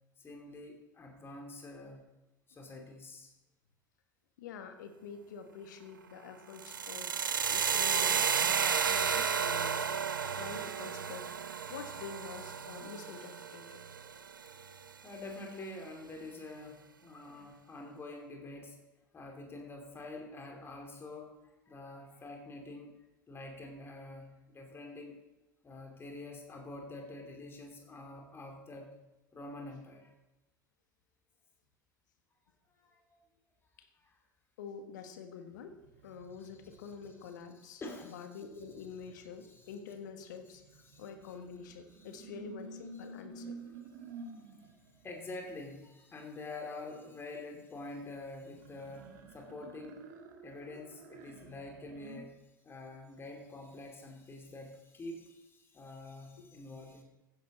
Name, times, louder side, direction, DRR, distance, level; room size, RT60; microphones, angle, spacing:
voice 1, 0.2-2.1 2.5-3.3 15.0-18.8 19.1-21.4 21.6-23.0 23.3-25.2 25.6-28.9 29.3-30.1 32.8-33.0 33.9-34.2 36.8-36.9 37.6-38.2 39.5-39.6 40.9-41.0 42.0-42.1 45.0-50.0 50.4-57.0, left 2 dB, 20° left, 2 dB, 2.6 m, -46 dB
voice 2, 4.4-9.8 10.3-11.3 11.7-13.8 17.4-17.5 33.8-33.9 34.6-35.8 36.0-40.6 41.0-43.7, left 6 dB, 65° left, 7 dB, 1.4 m, -47 dB
sound 1, 6.6-14.6, right 7 dB, 75° right, 0.6 m, -32 dB
sound 2, 35.5-37.5 38.5-45.3 48.4-52.2, right 3 dB, 60° right, 1.6 m, -51 dB
15.5 x 10.5 x 4.1 m, 1.0 s
figure-of-eight pair, 70°, 11 cm